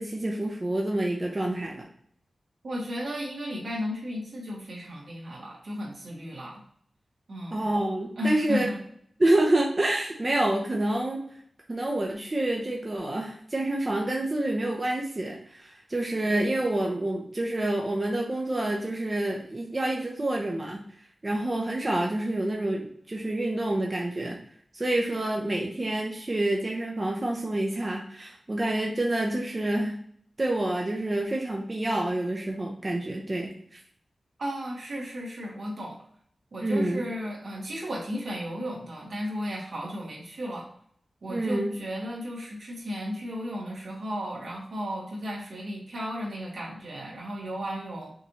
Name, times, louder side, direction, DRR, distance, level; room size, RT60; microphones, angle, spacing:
voice 1, 0.0-1.8 7.5-8.7 9.2-11.2 11.7-20.8 21.2-24.4 24.7-29.9 30.4-33.8 36.6-37.1 41.3-41.7, right 1 dB, 30° right, -2 dB, 0.8 m, -28 dB
voice 2, 2.6-6.6 7.3-7.7 8.2-8.8 34.4-36.0 36.5-40.7 41.2-48.1, equal, 75° right, -4 dB, 2.0 m, -34 dB
5.9 x 2.8 x 3.0 m, 0.64 s
wide cardioid pair, 90°, 0 cm